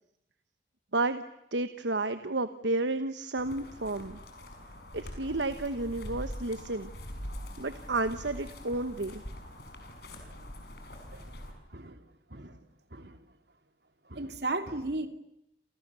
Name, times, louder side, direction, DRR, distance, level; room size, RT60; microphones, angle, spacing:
voice 1, 0.9-1.2 1.5-4.2 4.9-6.9 7.6-9.2, right 2 dB, 85° right, 10 dB, 1.3 m, -31 dB
sound 1, 3.4-11.5, equal, 65° left, 6.3 m, -43 dB
voice 2, 14.1-15.1, right 2 dB, 70° right, 8 dB, 2.9 m, -35 dB
29.5 x 28.5 x 7.0 m, 0.80 s
head